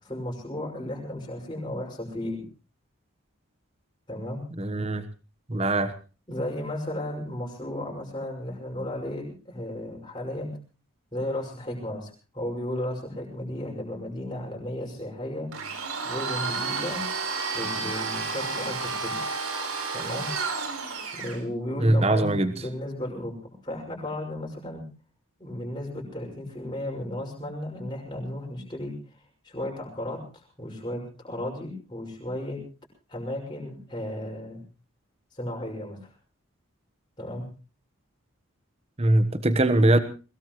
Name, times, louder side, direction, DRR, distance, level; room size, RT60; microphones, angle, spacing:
voice 1, 0.0-2.4 4.1-4.4 6.3-10.5 11.1-15.5 16.0-17.0 17.5-19.2 19.9-20.4 21.1-24.8 25.4-28.9 29.4-32.6 33.1-34.6 35.3-36.0 37.2-37.5, left 1 dB, 20° left, -1 dB, 6.0 m, -34 dB
voice 2, 4.6-5.0 5.5-5.9 21.8-22.5 39.0-40.0, right 1 dB, 30° right, 11 dB, 1.2 m, -21 dB
Domestic sounds home sounds, 15.5-21.4, right 4 dB, 90° right, 4.3 m, -31 dB
22.0 x 21.0 x 3.1 m, 0.34 s
head